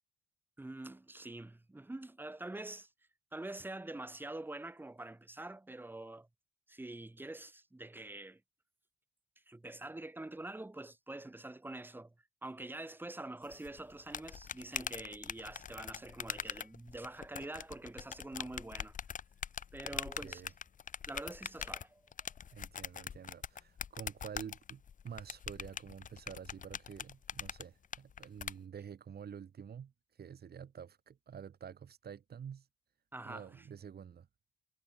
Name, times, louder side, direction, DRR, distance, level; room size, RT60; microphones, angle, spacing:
voice 1, 0.6-2.9 3.3-6.3 6.7-8.4 9.5-12.1 12.4-18.9 19.7-20.4 21.1-22.0 33.1-33.6, right 2 dB, 10° right, 1.2 m, -45 dB
sound 1, 13.5-28.5, left 7 dB, 40° left, 0.8 m, -43 dB
voice 2, 19.9-20.5 22.5-32.7 33.2-34.3, right 7 dB, 50° right, 6.5 m, -49 dB
cardioid pair, 90°, 20 cm